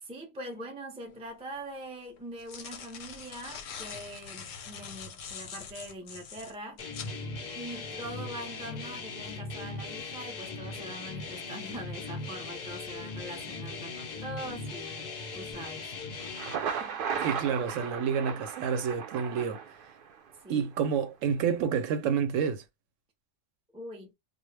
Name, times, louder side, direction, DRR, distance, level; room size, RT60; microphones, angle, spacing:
voice 1, 0.0-6.8 7.5-15.9 16.8-17.0 20.4-20.7 23.7-24.1, right 1 dB, 10° right, 0.3 m, -43 dB
sound 1, 1.1-1.2 2.2-7.2, left 7 dB, 90° left, 1.0 m, -43 dB
sound 2, 6.8-16.6, left 3 dB, 55° left, 0.4 m, -39 dB
Thunder, 16.2-20.2, right 7 dB, 60° right, 0.6 m, -35 dB
voice 2, 17.2-19.6 20.5-22.6, right 7 dB, 80° right, 0.9 m, -29 dB
2.2 x 2.0 x 3.1 m
omnidirectional pair, 1.3 m